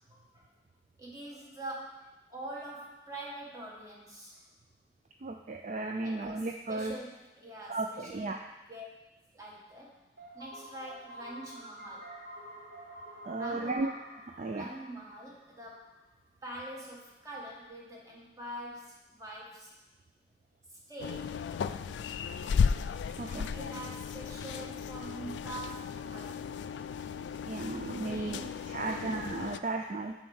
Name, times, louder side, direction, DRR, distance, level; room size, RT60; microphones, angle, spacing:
voice 1, 0.1-0.5 1.0-4.4 6.0-8.4 8.7-8.9 9.3-10.0 10.3-12.1 13.3-13.9 14.5-15.9 16.4-19.7 20.7-21.5 23.2-26.7 28.0-28.6 28.8-29.1, right 1 dB, 20° right, -3 dB, 1.4 m, -45 dB
voice 2, 5.2-6.9 7.7-8.4 13.2-13.9 14.4-14.7 23.2-23.5 27.5-30.1, right 3 dB, 40° right, 3 dB, 0.3 m, -35 dB
sound 1, 10.2-16.0, right 1 dB, 85° right, 2.1 m, -48 dB
sound 2, 21.0-29.6, left 6 dB, 85° left, 0.3 m, -35 dB
6.3 x 4.3 x 6.4 m, 1.0 s
head